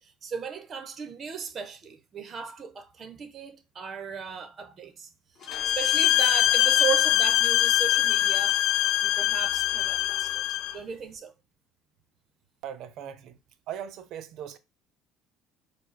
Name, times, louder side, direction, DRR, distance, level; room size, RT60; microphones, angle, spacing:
voice 1, 0.0-5.1 5.6-10.4 10.7-11.3, right 7 dB, 35° right, 0.9 m, -36 dB
sound 1, 5.4-10.8, left 5 dB, 40° left, 1.3 m, -46 dB
sound 2, 5.5-10.7, left 13 dB, 70° left, 0.3 m, -23 dB
voice 2, 12.6-13.4 13.7-14.6, right 9 dB, 60° right, 0.6 m, -39 dB
4.7 x 2.3 x 4.2 m
cardioid pair, 125°, 0 cm